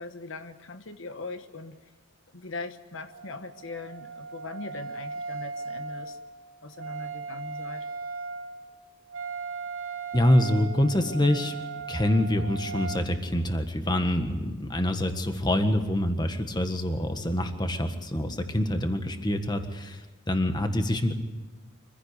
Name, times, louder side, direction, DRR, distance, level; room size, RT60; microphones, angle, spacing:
voice 1, 0.0-1.8 2.3-6.2 6.6-7.9, left 3 dB, 75° left, 9 dB, 1.2 m, -40 dB
Wind instrument woodwind instrument, 3.1-13.1, right 5 dB, 80° right, 1.5 m, -38 dB
voice 2, 10.1-11.5 11.9-21.1, left 1 dB, 20° left, 7 dB, 1.6 m, -26 dB
25.5 x 15.5 x 8.3 m, 1.3 s
head